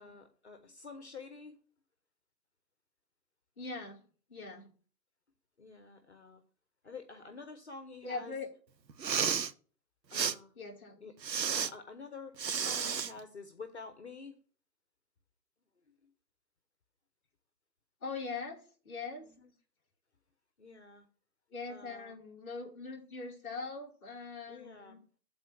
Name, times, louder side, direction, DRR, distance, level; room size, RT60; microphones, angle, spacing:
voice 1, 0.0-1.6 5.6-6.4 6.8-8.3 10.1-10.5 11.0-11.1 11.5-14.3 15.9-16.1 19.2-19.5 20.6-21.1 21.7-22.2 24.5-25.0, left 4 dB, 45° left, 8 dB, 0.9 m, -49 dB
voice 2, 3.6-4.8 8.0-8.5 10.5-11.1 18.0-19.3 21.5-25.0, left 4 dB, 10° left, -6 dB, 1.3 m, -42 dB
Respiratory sounds, 8.9-9.5 10.1-10.3 11.2-11.7 12.4-13.1, right 7 dB, 90° right, 0.8 m, -32 dB
8.3 x 4.3 x 6.3 m, 0.40 s
figure-of-eight pair, 160°, 49 cm